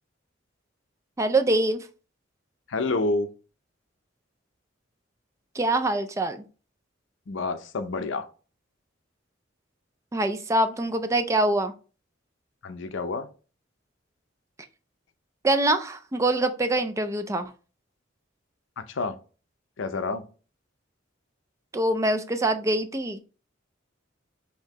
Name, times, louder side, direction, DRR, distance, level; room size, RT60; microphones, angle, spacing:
voice 1, 1.2-1.9 5.5-6.4 10.1-11.7 15.4-17.5 21.7-23.2, right 2 dB, 15° right, 0.3 m, -24 dB
voice 2, 2.7-3.3 7.3-8.3 12.6-13.3 18.8-19.2 19.8-20.2, left 3 dB, 70° left, 0.6 m, -28 dB
4.5 x 2.8 x 3.5 m
head